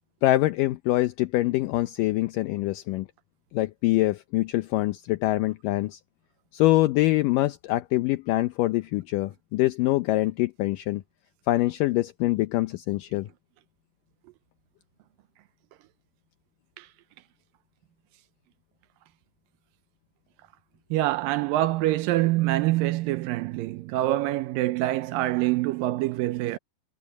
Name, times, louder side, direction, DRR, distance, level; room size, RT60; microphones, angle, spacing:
voice 1, 0.2-3.1 3.5-6.0 6.5-11.0 11.5-13.3, left 17 dB, 75° left, 2.2 m, -24 dB
voice 2, 20.9-26.6, right 16 dB, 80° right, 2.3 m, -25 dB
omnidirectional pair, 4.1 m